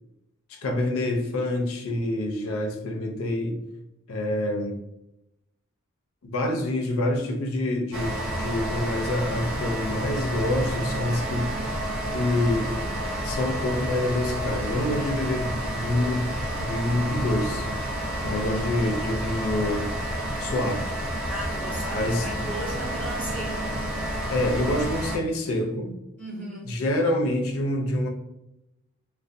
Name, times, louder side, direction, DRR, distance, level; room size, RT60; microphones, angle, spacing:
voice 1, 0.5-3.6 4.1-4.8 6.2-11.5 12.1-12.7 13.2-16.3 16.6-17.9 18.2-19.9 20.4-20.9 21.9-22.3 24.3-25.9 26.7-28.1, left 1 dB, 80° left, 0.5 m, -27 dB
sound 1, 7.9-25.2, right 1 dB, 70° right, 0.6 m, -30 dB
voice 2, 18.3-18.7 21.3-23.8 26.2-26.7, right 1 dB, 5° left, 1.0 m, -36 dB
2.4 x 2.2 x 2.5 m
head